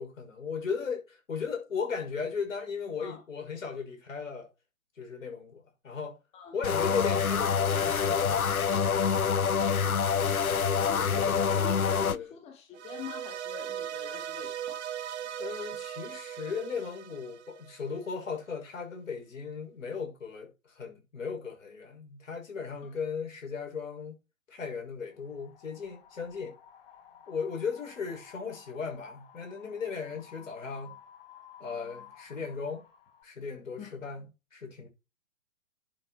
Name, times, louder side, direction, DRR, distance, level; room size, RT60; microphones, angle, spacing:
voice 1, 0.0-4.5 5.0-6.2 6.5-8.5 10.8-12.3 15.4-24.2 24.5-26.6 27.3-31.0 31.6-32.8 33.2-34.9, left 5 dB, 65° left, 6.3 m, -37 dB
sound 1, 6.6-12.2, left 6 dB, 85° left, 0.8 m, -26 dB
voice 2, 10.9-11.3 11.5-14.8 33.8-33.9, left 7 dB, 15° left, 1.6 m, -45 dB
sound 2, 12.7-18.0, right 10 dB, 55° right, 0.8 m, -39 dB
Wind, 25.1-33.2, left 9 dB, 45° left, 4.2 m, -54 dB
10.5 x 7.0 x 4.5 m
figure-of-eight pair, 130°, 41 cm